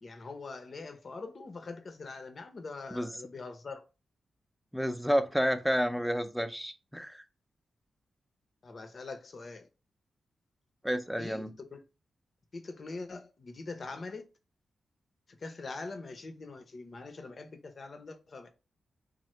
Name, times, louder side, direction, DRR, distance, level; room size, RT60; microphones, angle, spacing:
voice 1, 0.0-3.8 8.6-9.7 11.2-11.8 12.5-14.2 15.3-18.5, left 3 dB, 55° left, 0.6 m, -43 dB
voice 2, 4.7-7.2 10.8-11.5, equal, ahead, 0.5 m, -30 dB
3.2 x 2.0 x 3.0 m
supercardioid pair, 40°, 0 cm